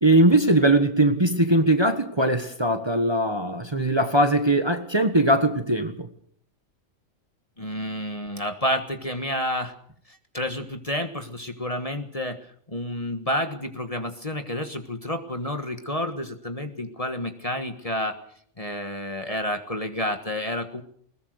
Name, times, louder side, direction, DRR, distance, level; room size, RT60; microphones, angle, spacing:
voice 1, 0.0-6.1, right 1 dB, 20° right, 1.5 m, -20 dB
voice 2, 7.6-9.7 10.1-12.4 12.7-18.2 18.6-20.8, left 1 dB, 25° left, 1.5 m, -30 dB
21.0 x 20.5 x 6.6 m
omnidirectional pair, 1.4 m